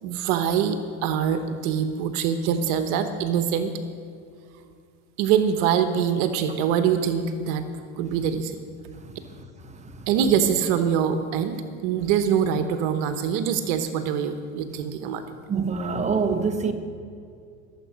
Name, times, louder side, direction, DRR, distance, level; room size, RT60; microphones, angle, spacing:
voice 1, 0.0-3.7 5.2-7.7 8.0-8.6 10.1-15.2, right 8 dB, 70° right, 8 dB, 1.1 m, -24 dB
voice 2, 15.5-16.7, right 5 dB, 20° right, 5 dB, 1.2 m, -24 dB
21.0 x 7.6 x 5.2 m, 2.4 s
supercardioid pair, 120°, 38 cm